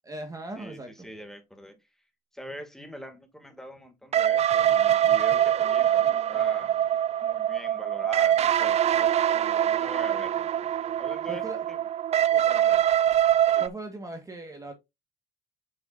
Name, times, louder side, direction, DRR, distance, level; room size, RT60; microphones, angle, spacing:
voice 1, 0.0-0.9 11.3-11.6 13.6-14.7, right 2 dB, 20° right, 1.6 m, -38 dB
voice 2, 0.6-1.8 2.3-6.8 7.2-10.3 11.0-11.8 12.3-12.8, equal, ahead, 2.4 m, -43 dB
sound 1, 4.1-13.7, right 11 dB, 40° right, 0.4 m, -23 dB
8.3 x 6.2 x 2.7 m
cardioid pair, 110°, 17 cm